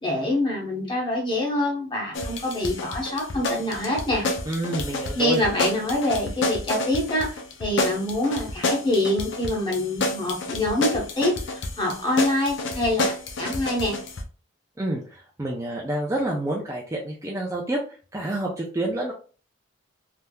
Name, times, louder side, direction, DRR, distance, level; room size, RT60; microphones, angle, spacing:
voice 1, 0.0-4.3 5.1-14.0, left 1 dB, 25° left, -2 dB, 1.0 m, -25 dB
sound 1, 2.1-14.2, left 2 dB, 60° left, 0.6 m, -29 dB
voice 2, 4.5-5.4 14.8-17.8 18.1-19.1, right 1 dB, 15° right, -1 dB, 0.4 m, -28 dB
3.4 x 2.7 x 2.2 m, 0.38 s
head